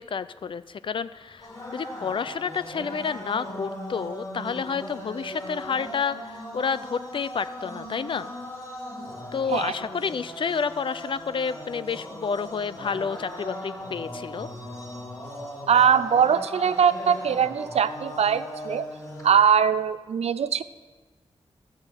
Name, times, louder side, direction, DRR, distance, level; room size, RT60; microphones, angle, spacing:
voice 1, 0.0-8.3 9.3-14.5, left 6 dB, 50° left, 15 dB, 0.4 m, -30 dB
sound 1, 1.4-19.3, equal, 30° left, 3.6 m, -38 dB
voice 2, 15.7-18.9 19.2-20.6, right 7 dB, 80° right, 15 dB, 0.5 m, -21 dB
13.5 x 6.4 x 8.0 m, 1.4 s
wide cardioid pair, 155°, 11 cm